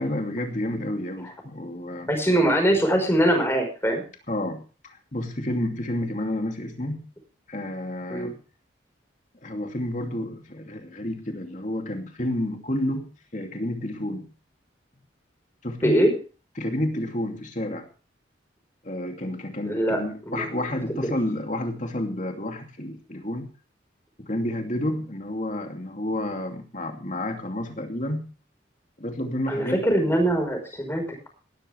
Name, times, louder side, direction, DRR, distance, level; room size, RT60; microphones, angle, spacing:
voice 1, 0.0-2.1 4.3-7.1 7.5-8.4 9.4-14.3 15.6-16.1 16.6-17.9 18.8-23.5 24.2-28.3 29.0-29.8, left 1 dB, 40° left, 3 dB, 2.7 m, -30 dB
voice 2, 2.1-4.0 8.1-8.3 15.8-16.1 19.7-20.0 20.3-20.5 29.5-31.3, right 1 dB, 15° left, 4 dB, 4.9 m, -22 dB
18.0 x 13.5 x 3.5 m, 0.36 s
head